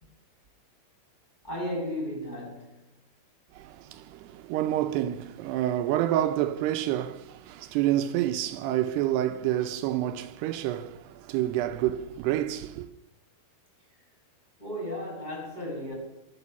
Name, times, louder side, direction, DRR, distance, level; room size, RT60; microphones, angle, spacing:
voice 1, 1.4-2.8 14.6-15.9, left 1 dB, 10° left, 6.7 m, -34 dB
voice 2, 3.5-12.9, right 13 dB, 85° right, 2.8 m, -28 dB
23.0 x 7.8 x 7.0 m
omnidirectional pair, 4.7 m